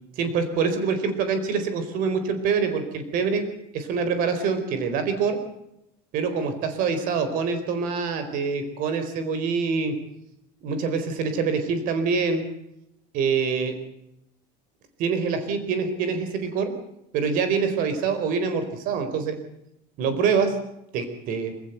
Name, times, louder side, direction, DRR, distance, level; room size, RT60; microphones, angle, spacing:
voice 1, 0.2-3.5 3.7-5.4 6.1-9.9 10.6-12.4 13.1-13.7 15.0-16.7 17.1-19.4 20.0-20.6 20.9-21.5, right 5 dB, 60° right, 9 dB, 4.3 m, -25 dB
26.5 x 16.5 x 8.1 m, 0.83 s
cardioid pair, 155°, 16 cm